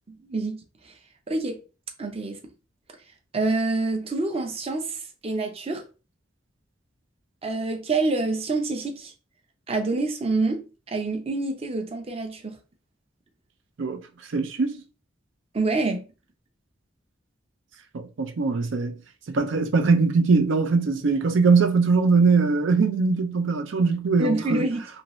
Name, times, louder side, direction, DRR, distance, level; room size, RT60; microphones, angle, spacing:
voice 1, 0.1-0.6 1.3-1.6 2.0-2.4 3.3-5.0 5.2-5.8 7.4-9.1 9.7-12.6 15.5-16.1 24.2-24.8, right 3 dB, 30° right, 0.6 m, -26 dB
voice 2, 14.3-14.8 17.9-18.9 19.3-24.6, right 4 dB, 90° right, 0.5 m, -21 dB
2.7 x 2.7 x 3.0 m
head